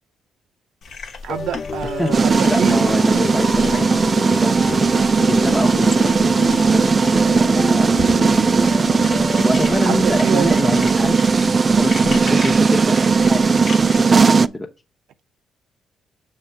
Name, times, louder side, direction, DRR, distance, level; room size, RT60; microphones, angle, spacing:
sound 1, 0.8-14.0, left 4 dB, 60° left, 1.0 m, -37 dB
voice 1, 1.2-2.8 9.8-10.8, right 9 dB, 80° right, 0.6 m, -26 dB
sound 2, 1.3-10.2, left 5 dB, 45° left, 0.4 m, -30 dB
voice 2, 2.0-4.7 5.2-6.9 7.1-8.8 9.4-14.7, left 1 dB, 10° left, 0.8 m, -27 dB
sound 3, 2.1-14.5, right 5 dB, 35° right, 0.3 m, -17 dB
6.5 x 3.2 x 5.6 m
cardioid pair, 90°, 0 cm